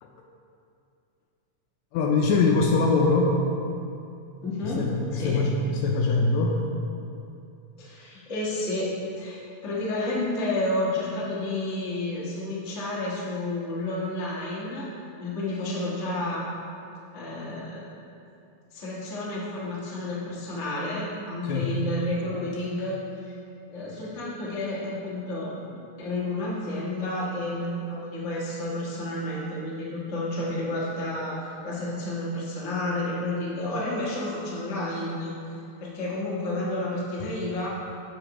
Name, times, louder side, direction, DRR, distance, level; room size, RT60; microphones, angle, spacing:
voice 1, 1.9-3.4 4.6-6.6 21.4-21.8, left 3 dB, 80° left, 0 dB, 1.7 m, -23 dB
voice 2, 4.4-4.8 5.1-5.4 7.8-14.9 15.2-16.4 17.1-17.8 18.7-23.3 23.7-31.4 31.6-35.3 35.8-37.7, left 1 dB, 50° left, -7 dB, 0.8 m, -31 dB
8.4 x 5.6 x 3.0 m, 2.6 s
omnidirectional pair, 3.4 m